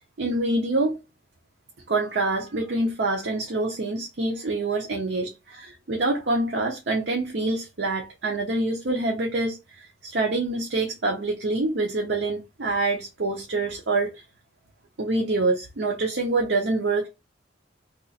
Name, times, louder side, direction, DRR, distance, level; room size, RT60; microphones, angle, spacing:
voice 1, 0.2-1.0 1.9-14.2 15.0-17.1, right 2 dB, 70° right, 0.7 m, -26 dB
2.9 x 2.4 x 3.9 m
head